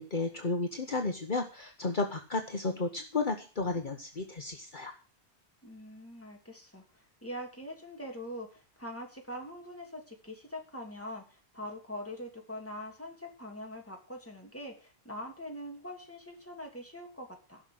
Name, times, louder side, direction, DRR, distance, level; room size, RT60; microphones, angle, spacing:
voice 1, 0.0-4.9, left 3 dB, 50° left, 4 dB, 1.4 m, -33 dB
voice 2, 5.6-17.6, equal, 15° left, 1 dB, 2.9 m, -43 dB
15.5 x 6.1 x 7.8 m, 0.35 s
omnidirectional pair, 1.1 m